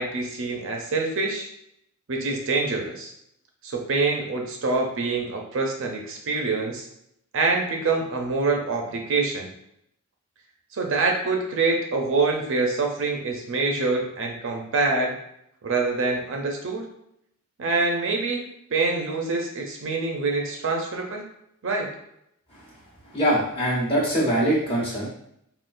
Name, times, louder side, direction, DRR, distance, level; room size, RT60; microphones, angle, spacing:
voice 1, 0.0-1.5 2.1-3.1 3.6-6.9 7.3-9.5 10.7-15.1 15.6-16.8 17.6-18.5 18.7-21.2 21.6-21.9, right 3 dB, 60° right, 1 dB, 0.6 m, -25 dB
voice 2, 23.1-25.1, right 1 dB, 25° left, -6 dB, 1.0 m, -23 dB
3.7 x 2.4 x 2.5 m, 0.76 s
head